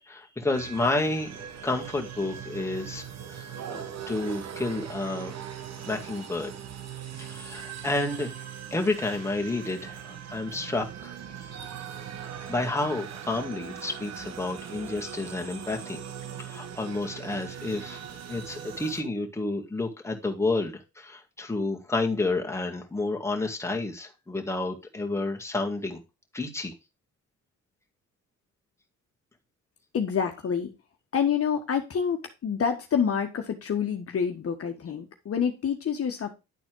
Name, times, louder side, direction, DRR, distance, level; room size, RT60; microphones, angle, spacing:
voice 1, 0.1-1.3 1.6-3.0 3.3-5.4 5.8-6.5 7.2-8.3 8.7-11.1 12.5-16.0 16.4-26.0 26.3-26.7, left 2 dB, 10° left, 1 dB, 2.0 m, -30 dB
sound 1, 0.5-19.0, right 8 dB, 60° right, 1.4 m, -40 dB
voice 2, 29.9-30.7 31.1-36.3, left 7 dB, 50° left, 5 dB, 1.5 m, -27 dB
10.5 x 4.2 x 4.7 m, 0.26 s
cardioid pair, 90°, 30 cm